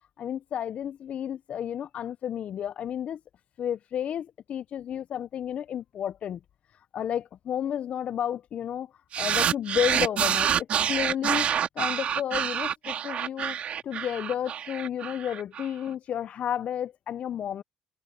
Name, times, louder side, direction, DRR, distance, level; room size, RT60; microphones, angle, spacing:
voice 1, 0.2-3.2 3.6-6.4 6.9-11.5 11.8-13.6 13.8-17.6, left 9 dB, 60° left, 0.7 m, -32 dB
sound 1, 9.1-15.7, right 9 dB, 60° right, 2.5 m, -27 dB
hypercardioid pair, 55°, 2 cm